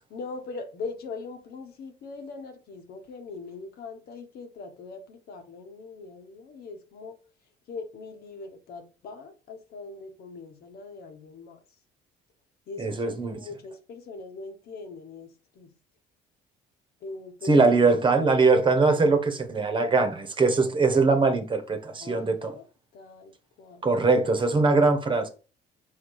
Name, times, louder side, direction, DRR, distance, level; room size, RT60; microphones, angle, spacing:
voice 1, 0.1-7.2 7.7-11.6 12.7-15.7 17.0-17.8 22.0-22.6 22.9-23.3 23.6-23.9, left 4 dB, 65° left, 1.4 m, -41 dB
voice 2, 12.8-13.4 17.4-22.6 23.8-25.3, right 3 dB, 30° right, 1.2 m, -22 dB
5.9 x 4.2 x 4.8 m
cardioid pair, 110°, 17 cm